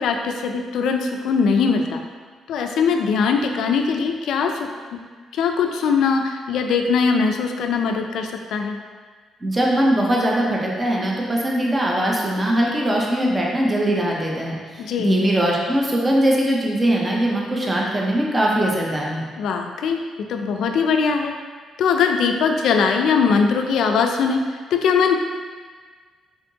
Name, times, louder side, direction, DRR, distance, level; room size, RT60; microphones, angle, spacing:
voice 1, 0.0-2.0 2.5-5.0 5.3-8.8 14.8-15.2 19.4-20.0 20.3-21.3 21.8-25.1, left 5 dB, 70° left, 4 dB, 0.3 m, -21 dB
voice 2, 9.4-19.2, right 1 dB, 15° right, -3 dB, 0.6 m, -21 dB
4.3 x 3.5 x 2.8 m, 1.5 s
cardioid pair, 170°, 0 cm